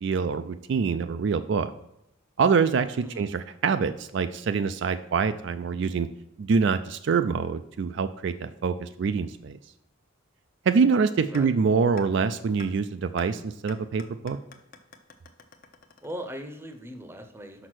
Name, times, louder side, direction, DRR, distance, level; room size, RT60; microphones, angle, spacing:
voice 1, 0.0-1.7 2.4-6.1 6.4-9.6 10.7-14.4, right 5 dB, 55° right, 10 dB, 0.3 m, -25 dB
sound 1, 11.3-11.4 12.0-12.1 12.6-12.7 13.2-13.3 13.7-16.6, left 5 dB, 45° left, 0.7 m, -47 dB
voice 2, 16.0-17.7, equal, 10° right, 6 dB, 0.7 m, -39 dB
6.0 x 5.4 x 6.2 m, 0.85 s
head